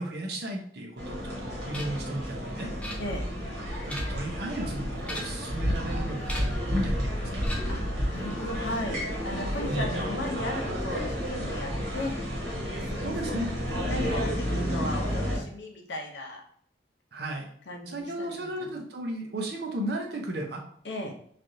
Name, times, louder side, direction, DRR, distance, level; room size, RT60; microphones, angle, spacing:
voice 1, 0.0-2.7 3.8-7.4 9.7-9.9 13.0-13.5 17.1-17.5 17.9-20.6, right 1 dB, 65° right, 2 dB, 0.6 m, -34 dB
sound 1, 1.0-15.4, equal, 80° right, 1.3 m, -31 dB
sound 2, 1.7-2.1 2.8-3.4 3.8-4.3 5.0-5.5 6.3-6.7 7.4-7.9, left 1 dB, 5° left, 0.4 m, -40 dB
voice 2, 7.7-12.2 12.9-16.4 17.7-18.8 20.8-21.1, left 1 dB, 80° left, 1 dB, 0.7 m, -36 dB
3.2 x 2.5 x 2.7 m, 0.63 s
head